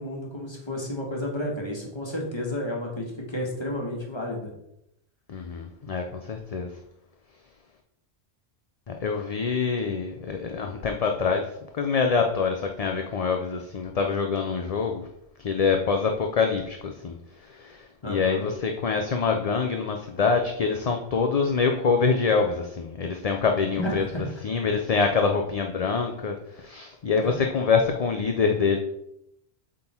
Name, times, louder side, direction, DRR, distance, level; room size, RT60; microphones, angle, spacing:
voice 1, 0.0-4.5 18.0-18.5 23.8-24.3 27.2-27.3, left 1 dB, 25° left, -1 dB, 1.5 m, -31 dB
voice 2, 5.3-6.7 8.9-11.4 11.8-15.0 15.4-17.2 17.6-17.8 18.0-24.0 24.4-28.8, left 5 dB, 45° left, 4 dB, 0.5 m, -25 dB
7.8 x 3.8 x 4.4 m, 0.80 s
omnidirectional pair, 1.1 m